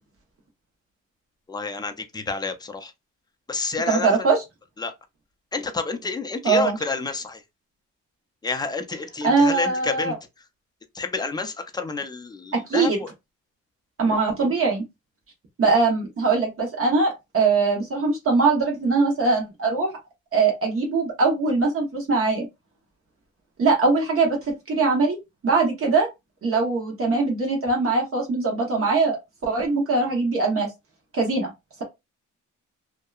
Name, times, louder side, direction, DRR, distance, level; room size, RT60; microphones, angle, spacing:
voice 1, 1.5-2.9 3.5-4.3 4.8-4.9 5.5-7.4 8.4-10.1 10.9-13.1, left 4 dB, 15° left, 0.5 m, -29 dB
voice 2, 3.9-4.4 6.4-6.8 9.2-10.2 12.5-13.0 14.0-14.8 15.6-19.9 20.3-22.5 23.6-25.2 25.4-26.1 26.4-29.2 29.4-30.7 31.1-31.5, right 4 dB, 45° right, 1.0 m, -21 dB
2.7 x 2.1 x 2.3 m
cardioid pair, 90°, 30 cm